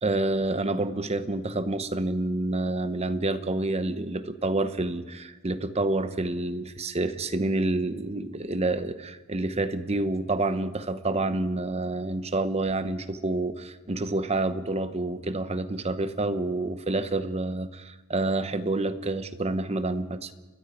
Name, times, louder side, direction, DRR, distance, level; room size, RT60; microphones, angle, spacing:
voice 1, 0.0-20.3, right 2 dB, 30° right, 11 dB, 0.9 m, -28 dB
30.0 x 22.0 x 4.9 m, 1.2 s
head